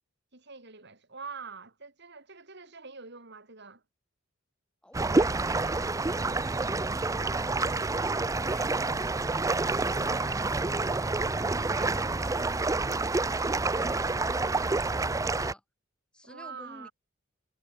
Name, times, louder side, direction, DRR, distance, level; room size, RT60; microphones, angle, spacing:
voice 1, 0.3-3.8 10.0-10.3 16.2-16.9, right 4 dB, 55° right, 5.3 m, -45 dB
voice 2, 4.8-10.5 11.2-15.6 16.1-16.9, left 1 dB, 5° left, 1.1 m, -51 dB
sound 1, 4.9-15.5, right 3 dB, 15° right, 0.5 m, -28 dB
head